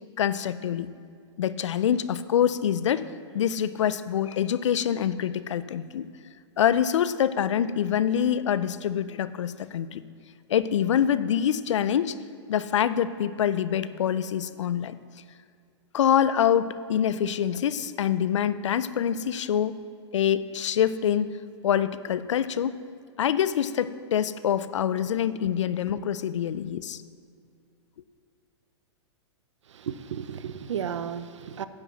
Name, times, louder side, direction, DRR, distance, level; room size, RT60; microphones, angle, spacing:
voice 1, 0.2-0.9 1.4-3.0 3.3-6.1 6.6-10.0 10.5-12.2 12.5-15.0 15.9-19.8 20.1-22.8 23.2-27.0, left 9 dB, 85° left, 15 dB, 0.4 m, -25 dB
voice 2, 29.7-31.7, right 8 dB, 90° right, 13 dB, 0.5 m, -34 dB
9.7 x 7.5 x 4.1 m, 2.2 s
hypercardioid pair, 125°, 15 cm